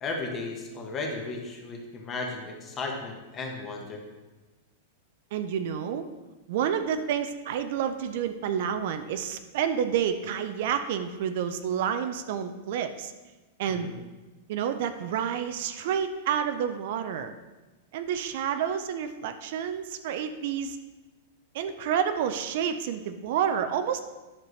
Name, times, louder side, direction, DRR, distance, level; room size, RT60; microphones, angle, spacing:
voice 1, 0.0-4.0 13.7-13.9, left 3 dB, 20° left, 2 dB, 1.2 m, -35 dB
voice 2, 5.3-6.1 6.5-13.1 13.6-13.9 14.5-17.3 17.9-20.8 21.5-24.0, right 8 dB, 55° right, 9 dB, 0.5 m, -29 dB
10.5 x 6.6 x 3.1 m, 1.2 s
supercardioid pair, 165°, 0 cm